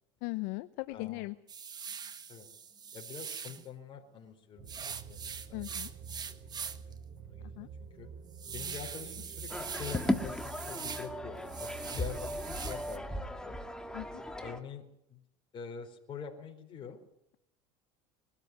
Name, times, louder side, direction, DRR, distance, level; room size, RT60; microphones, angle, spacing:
voice 1, 0.2-1.4 5.5-5.9 7.5-7.7 12.6-12.7 13.9-14.2, left 22 dB, 70° left, 12 dB, 0.8 m, -38 dB
voice 2, 0.9-1.3 2.3-2.5 2.9-5.2 5.5-5.7 6.3-8.1 8.4-13.6 14.4-14.8 15.1-15.2 15.5-17.0, left 7 dB, 35° left, 1 dB, 4.5 m, -46 dB
sound 1, 1.5-3.7 4.7-6.9 7.3-7.4 7.9-11.1 11.4-13.0, right 6 dB, 30° right, 1.5 m, -43 dB
sound 2, 4.6-12.9, right 6 dB, 55° right, 2.1 m, -48 dB
sound 3, 9.5-14.6, left 1 dB, 5° left, 1.8 m, -36 dB
23.0 x 13.5 x 9.7 m, 0.77 s
supercardioid pair, 110°, 14 cm